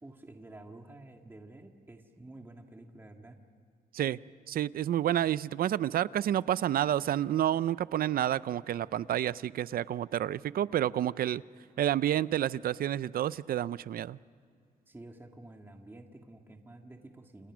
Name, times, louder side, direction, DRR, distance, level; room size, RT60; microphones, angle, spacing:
voice 1, 0.0-3.4 14.9-17.5, right 2 dB, 15° right, 3 dB, 1.8 m, -50 dB
voice 2, 4.5-11.4 11.8-14.2, right 11 dB, 75° right, 18 dB, 0.5 m, -29 dB
29.0 x 28.5 x 6.2 m, 2.3 s
wide cardioid pair, 130°, 15 cm